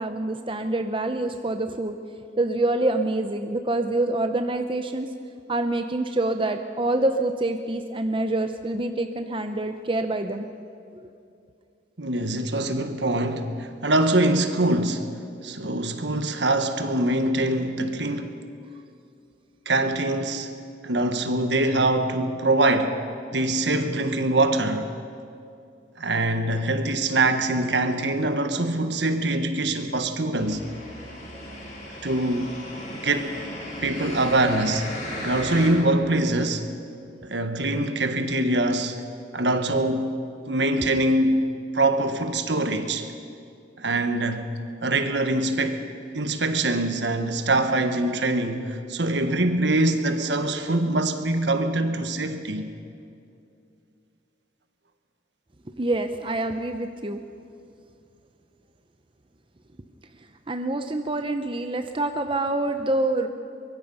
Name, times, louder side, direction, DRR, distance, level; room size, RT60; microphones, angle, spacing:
voice 1, 0.0-1.9 2.4-5.1 5.5-10.5 10.9-11.1 37.0-37.1 55.8-57.2 60.5-63.3, right 2 dB, 30° right, 0.8 m, -26 dB
voice 2, 12.0-18.3 19.6-20.5 20.8-23.0 23.3-24.9 26.0-30.6 32.0-32.5 33.0-33.4 33.8-34.9 35.2-36.7 37.2-39.0 39.3-41.5 41.7-43.1 43.8-44.5 44.8-45.8 46.1-52.7, right 2 dB, 70° right, 1.5 m, -24 dB
sound 1, 30.4-35.7, left 1 dB, 40° left, 5.4 m, -36 dB
23.5 x 22.5 x 5.6 m
head